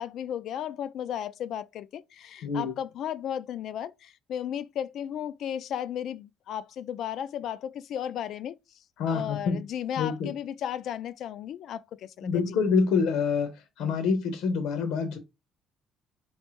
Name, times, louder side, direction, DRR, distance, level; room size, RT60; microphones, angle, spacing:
voice 1, 0.0-8.6 9.1-12.5, left 10 dB, 50° left, 0.3 m, -35 dB
voice 2, 2.4-2.7 9.0-9.6 10.0-10.3 12.2-13.5 13.8-15.2, left 5 dB, 85° left, 0.9 m, -26 dB
4.0 x 3.2 x 3.1 m
cardioid pair, 175°, 0 cm